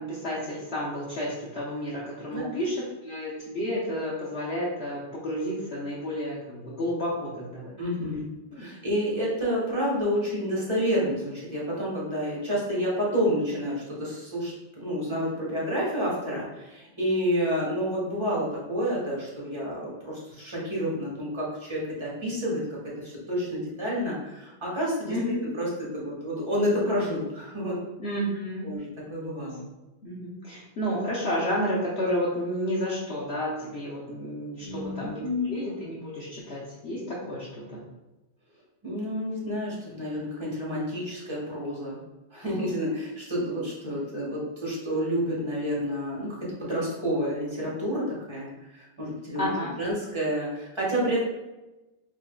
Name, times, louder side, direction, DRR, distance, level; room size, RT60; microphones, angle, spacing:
voice 1, 0.0-8.2 8.5-8.7 25.1-25.4 28.0-28.7 29.4-29.5 30.0-37.8 49.3-49.7, equal, 60° left, -6 dB, 0.7 m, -31 dB
voice 2, 7.8-8.2 8.5-22.6 23.0-25.2 25.5-27.8 28.6-29.7 34.6-35.5 38.8-42.0 42.3-49.5 49.8-51.2, equal, 20° right, -6 dB, 1.0 m, -29 dB
4.9 x 2.7 x 2.3 m, 1.0 s
omnidirectional pair, 1.9 m